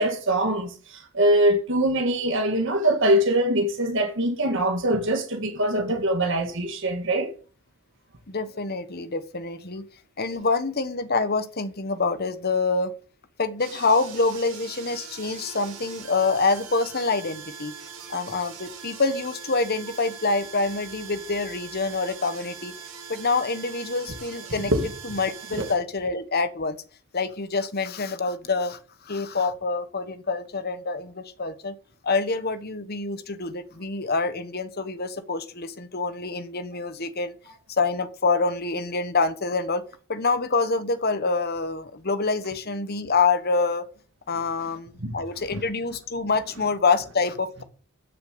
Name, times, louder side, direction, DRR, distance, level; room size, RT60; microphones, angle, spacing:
voice 1, 0.0-7.3 24.7-24.9 25.6-25.7 45.0-45.1, right 1 dB, 60° right, 2.1 m, -23 dB
voice 2, 8.3-9.8 10.2-12.9 13.4-17.7 18.1-22.7 23.1-24.7 25.0-26.8 27.1-31.8 32.0-37.3 37.7-39.8 40.1-43.9 44.3-47.6, left 4 dB, 45° left, 1.2 m, -26 dB
sound 1, 13.6-25.7, right 6 dB, 90° right, 6.6 m, -42 dB
13.5 x 6.7 x 6.7 m
head